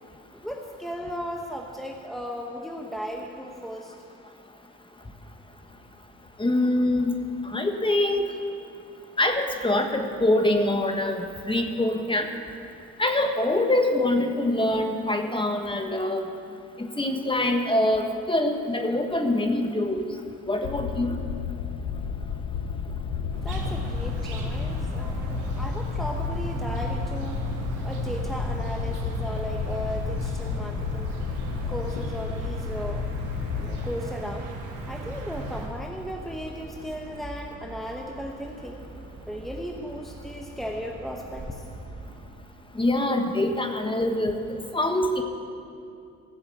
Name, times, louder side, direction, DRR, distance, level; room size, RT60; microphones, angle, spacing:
voice 1, 0.3-3.9 23.4-27.5 27.8-31.2 31.7-33.1 33.6-34.5 34.9-38.8 39.3-41.7, equal, ahead, 1 dB, 1.0 m, -36 dB
voice 2, 6.4-7.2 7.4-8.2 9.2-12.3 13.0-16.2 16.8-20.1 20.5-21.2 42.7-45.2, left 1 dB, 15° left, 5 dB, 1.3 m, -24 dB
sound 1, 20.6-33.9, left 6 dB, 75° left, 0.8 m, -32 dB
sound 2, 23.3-42.2, right 2 dB, 60° right, 2.9 m, -44 dB
sound 3, 23.5-35.7, right 1 dB, 90° right, 2.0 m, -35 dB
15.5 x 7.1 x 8.0 m, 2.5 s
cardioid pair, 90°, 30 cm